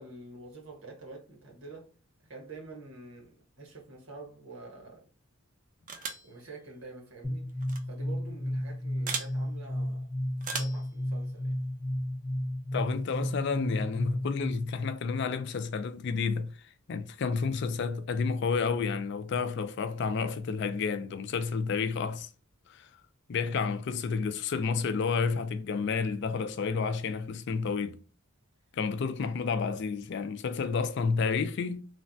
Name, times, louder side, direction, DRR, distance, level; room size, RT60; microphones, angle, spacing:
voice 1, 0.0-1.9 2.2-5.1 6.2-7.6 7.9-10.1 10.5-11.6, right 2 dB, 75° right, 1.2 m, -47 dB
sound 1, 5.9-6.3 7.6-7.8 9.1-9.3 10.4-10.8, right 5 dB, 40° right, 0.4 m, -35 dB
sound 2, 7.2-14.8, equal, 10° left, 0.7 m, -33 dB
voice 2, 12.7-16.5 16.9-22.3 22.7-22.9 23.3-28.0 28.7-31.8, left 5 dB, 55° left, 0.3 m, -30 dB
3.2 x 2.1 x 2.6 m
head